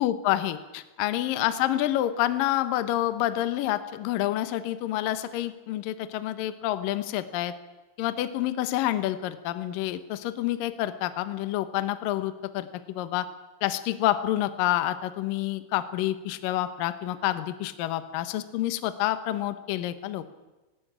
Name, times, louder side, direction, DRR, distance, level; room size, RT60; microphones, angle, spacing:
voice 1, 0.0-7.5 8.0-13.3 13.6-20.3, left 13 dB, 70° left, 11 dB, 2.2 m, -28 dB
19.0 x 17.5 x 8.9 m, 1.1 s
omnidirectional pair, 5.3 m